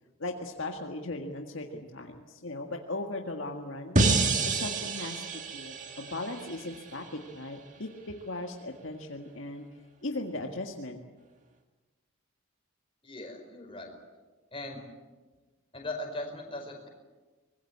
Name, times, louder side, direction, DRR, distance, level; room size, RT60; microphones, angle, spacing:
voice 1, 0.2-4.0 4.4-5.2 5.5-7.0 7.3-9.6 10.0-11.0, left 2 dB, 60° left, 2 dB, 1.8 m, -38 dB
sound 1, 4.0-7.1, right 3 dB, 35° right, 2.0 m, -28 dB
voice 2, 13.0-13.9 14.5-14.8 15.7-16.9, left 1 dB, 25° left, 2 dB, 4.9 m, -39 dB
24.5 x 21.5 x 8.7 m, 1.3 s
head